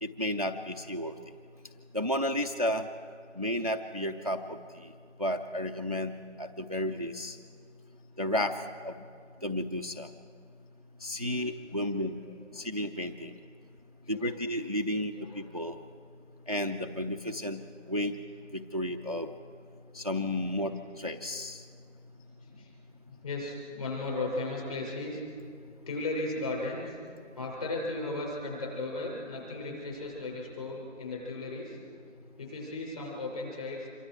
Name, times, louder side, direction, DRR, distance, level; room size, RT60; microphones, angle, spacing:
voice 1, 0.0-1.2 1.9-2.9 3.4-4.9 5.2-6.1 6.4-7.4 8.2-8.6 8.8-8.9 9.4-10.1 11.0-12.2 12.5-13.3 14.1-15.8 16.5-17.6 17.9-18.2 18.5-19.3 19.9-21.7, left 1 dB, 30° right, 6 dB, 0.6 m, -32 dB
voice 2, 12.0-12.7 14.0-14.3 15.1-15.5 20.6-20.9 22.4-22.7 23.2-25.2 25.9-27.0 27.3-31.8 32.4-33.9, left 2 dB, 30° left, -1 dB, 5.9 m, -36 dB
26.5 x 23.5 x 4.7 m, 2.2 s
figure-of-eight pair, 175°, 37 cm